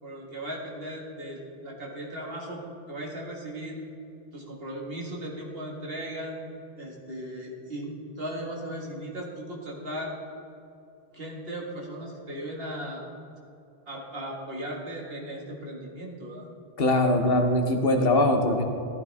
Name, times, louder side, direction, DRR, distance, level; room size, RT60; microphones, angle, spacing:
voice 1, 0.0-2.6 2.9-3.8 4.3-6.4 6.8-10.2 11.1-13.0 13.9-16.5, right 1 dB, 70° right, -2 dB, 2.1 m, -37 dB
voice 2, 16.8-18.6, left 1 dB, 65° left, 5 dB, 1.2 m, -22 dB
14.5 x 12.0 x 3.5 m, 2.7 s
omnidirectional pair, 1.0 m